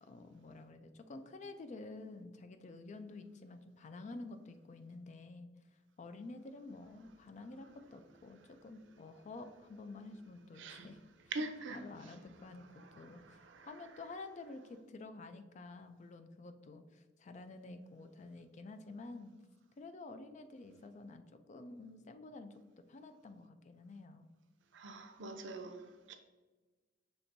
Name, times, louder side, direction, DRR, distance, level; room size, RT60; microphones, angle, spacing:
voice 1, 0.0-5.5 6.0-11.0 11.7-19.3 19.8-24.3, left 3 dB, 40° left, 0.3 m, -50 dB
voice 2, 10.5-10.9 11.3-12.2 12.5-13.9 24.7-26.2, right 3 dB, 75° right, 0.5 m, -45 dB
6.0 x 3.3 x 2.6 m
head